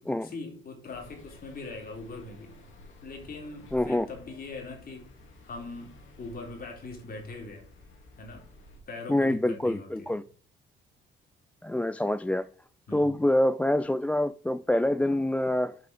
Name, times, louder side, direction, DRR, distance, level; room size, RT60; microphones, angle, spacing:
voice 1, 0.2-2.6 3.0-5.1 5.4-7.7 8.2-8.5 8.9-10.1 12.9-13.2, left 3 dB, 50° left, 3.7 m, -41 dB
sound 1, 0.8-8.8, left 1 dB, 75° left, 3.0 m, -52 dB
voice 2, 3.7-4.1 9.1-10.2 11.6-12.5 12.9-15.8, left 1 dB, 5° left, 0.3 m, -26 dB
7.7 x 5.5 x 5.1 m
cardioid pair, 90°, 20 cm